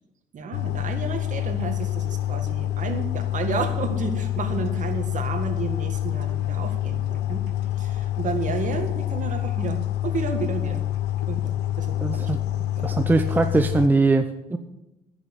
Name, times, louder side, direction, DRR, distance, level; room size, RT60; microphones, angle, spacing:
voice 1, 0.3-7.4 7.8-10.8 11.3-12.9, right 5 dB, 50° right, 6 dB, 1.9 m, -32 dB
sound 1, 0.5-13.9, left 13 dB, 80° left, 0.5 m, -27 dB
voice 2, 12.0-12.4 12.8-14.6, right 3 dB, 10° right, 7 dB, 0.7 m, -21 dB
10.0 x 6.7 x 9.1 m, 0.92 s
cardioid pair, 110°, 17 cm